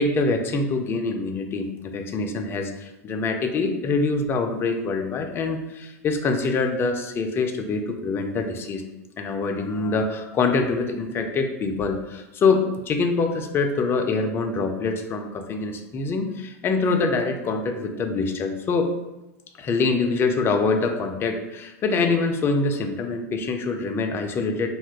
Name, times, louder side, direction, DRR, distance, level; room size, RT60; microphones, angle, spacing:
voice 1, 0.0-8.8 9.2-18.9 19.6-24.7, left 4 dB, 30° left, 5 dB, 0.4 m, -25 dB
2.7 x 2.4 x 3.3 m, 0.98 s
hypercardioid pair, 95°, 8 cm